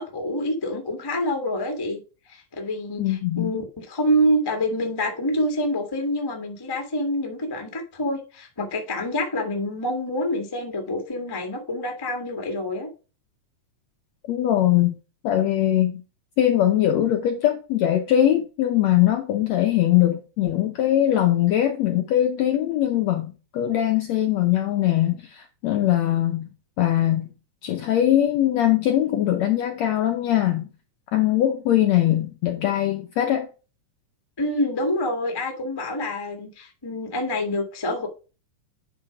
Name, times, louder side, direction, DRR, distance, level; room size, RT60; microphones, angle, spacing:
voice 1, 0.0-2.0 2.3-12.9 34.4-38.1, equal, 15° left, 0.8 m, -26 dB
voice 2, 3.0-3.5 14.3-15.0 15.2-16.0 16.4-26.5 26.8-27.3 27.6-30.7 31.1-33.5, left 12 dB, 75° left, 1.6 m, -21 dB
10.0 x 4.0 x 4.7 m
omnidirectional pair, 3.9 m